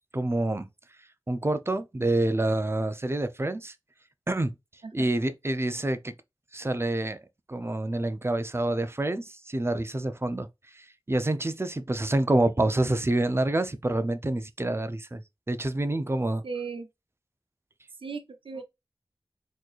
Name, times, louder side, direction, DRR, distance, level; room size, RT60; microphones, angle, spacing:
voice 1, 0.1-0.7 1.3-3.7 4.3-4.5 4.9-6.1 6.5-7.2 7.5-10.5 10.7-16.4, right 2 dB, 30° right, 0.6 m, -27 dB
voice 2, 16.4-16.9 18.0-18.6, right 5 dB, 85° right, 0.7 m, -36 dB
4.1 x 3.1 x 2.4 m
wide cardioid pair, 40°, 9 cm